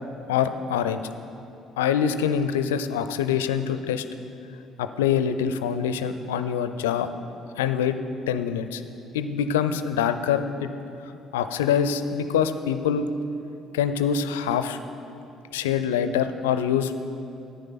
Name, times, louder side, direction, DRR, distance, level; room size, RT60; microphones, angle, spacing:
voice 1, 0.3-1.1 1.8-4.0 4.8-7.1 7.6-8.0 8.3-8.8 9.1-10.7 11.3-13.1 13.7-14.8 15.5-16.9, left 8 dB, 80° left, 10 dB, 0.4 m, -25 dB
11.0 x 8.8 x 5.8 m, 2.7 s
hypercardioid pair, 50°, 0 cm